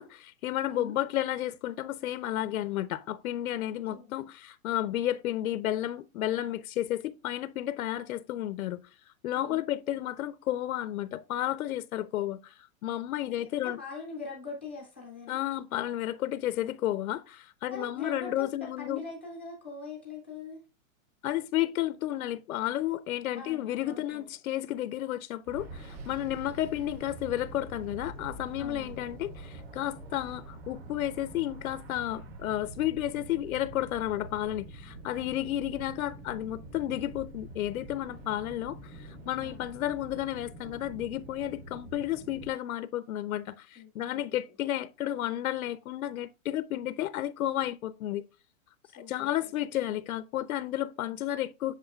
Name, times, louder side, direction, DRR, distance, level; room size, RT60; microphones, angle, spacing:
voice 1, 0.0-13.8 15.3-19.0 21.2-48.2 48.9-51.7, left 13 dB, 85° left, 0.6 m, -32 dB
voice 2, 9.3-9.6 13.4-15.4 17.7-18.5 18.8-20.6 23.3-24.2 28.6-29.0 35.2-35.5 39.4-39.6 43.8-44.3 48.8-49.3, left 4 dB, 10° left, 0.3 m, -43 dB
sound 1, 25.5-42.5, right 2 dB, 45° right, 1.5 m, -45 dB
8.1 x 6.1 x 2.3 m
hypercardioid pair, 170°, 41 cm